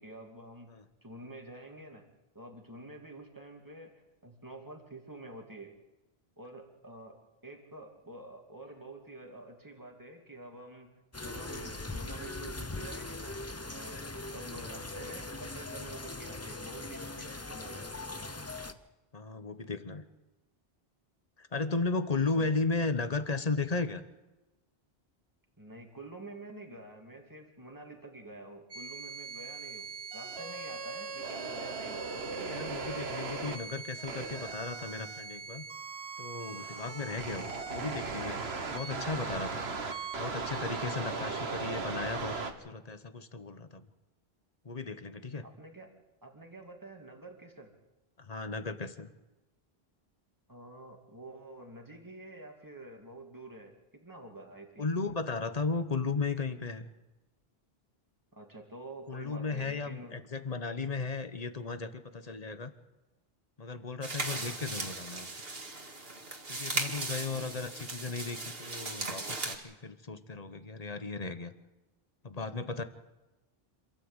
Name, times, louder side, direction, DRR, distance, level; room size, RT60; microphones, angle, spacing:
voice 1, 0.0-0.7 1.0-2.0 2.3-5.7 6.4-7.2 7.4-10.9 11.2-13.4 13.7-17.9 22.3-22.5 25.6-32.1 45.4-45.9 46.2-47.7 50.5-54.9 58.3-60.2 64.4-64.6 67.2-67.5, right 2 dB, 20° right, 2 dB, 2.5 m, -48 dB
sound 1, 11.1-18.7, left 2 dB, 15° left, 0.7 m, -41 dB
voice 2, 19.1-20.0 21.4-24.0 32.3-35.6 36.2-38.4 38.7-39.7 40.2-43.9 44.6-45.4 48.2-49.1 54.8-56.9 59.1-62.7 63.6-65.3 66.5-71.5 72.2-72.8, left 4 dB, 40° left, 10 dB, 1.2 m, -35 dB
sound 2, 28.7-42.5, right 4 dB, 85° right, 1.7 m, -38 dB
sound 3, 64.0-69.6, right 3 dB, 70° right, 2.3 m, -37 dB
27.0 x 13.0 x 8.1 m, 1.1 s
omnidirectional pair, 1.0 m